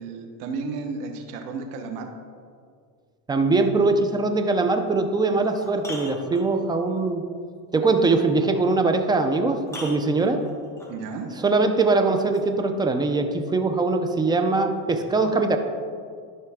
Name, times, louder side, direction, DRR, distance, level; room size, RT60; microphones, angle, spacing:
voice 1, 0.0-2.1 10.9-11.3, right 4 dB, 85° right, 4 dB, 1.3 m, -33 dB
voice 2, 3.3-7.3 7.7-10.4 11.4-15.6, right 3 dB, 10° right, 6 dB, 0.4 m, -22 dB
sound 1, 4.8-4.9 5.3-6.8 8.8-8.9 9.6-11.0 12.3-12.4, left 1 dB, 5° left, 1.5 m, -40 dB
12.0 x 5.6 x 3.6 m, 2.1 s
supercardioid pair, 130°, 44 cm